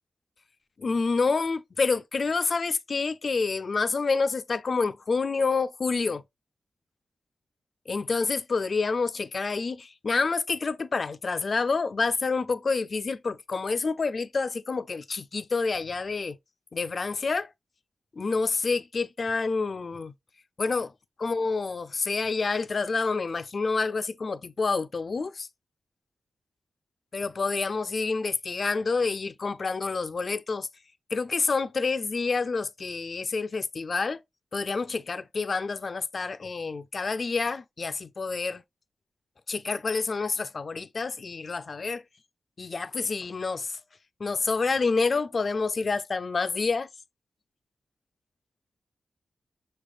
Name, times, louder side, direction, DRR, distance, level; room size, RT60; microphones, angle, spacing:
voice 1, 0.8-6.2 7.9-16.4 16.7-17.5 18.2-20.1 20.6-20.9 21.2-25.5 27.1-30.7 31.1-34.2 34.5-38.6 39.5-42.0 42.6-43.8 44.2-46.9, left 4 dB, 50° left, 0.3 m, -28 dB
6.1 x 3.3 x 2.4 m
cardioid pair, 75°, 0 cm